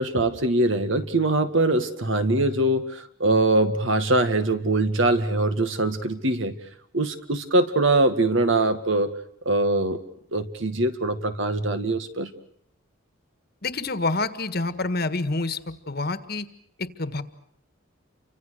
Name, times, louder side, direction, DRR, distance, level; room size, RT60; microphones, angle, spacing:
voice 1, 0.0-6.5 6.9-9.1 9.5-10.0 10.3-12.3, right 2 dB, 65° right, 9 dB, 2.1 m, -22 dB
voice 2, 13.6-16.5 16.8-17.2, left 3 dB, 50° left, 11 dB, 1.6 m, -27 dB
30.0 x 25.5 x 6.6 m, 0.67 s
head